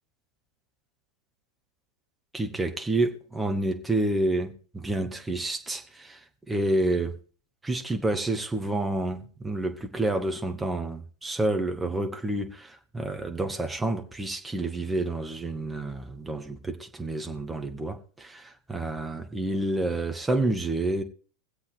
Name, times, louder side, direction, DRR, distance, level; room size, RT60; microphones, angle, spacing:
voice 1, 2.3-6.2 6.5-7.1 7.6-21.0, right 2 dB, 10° right, 1.4 m, -29 dB
23.0 x 7.9 x 3.3 m
figure-of-eight pair, 90°, 0 cm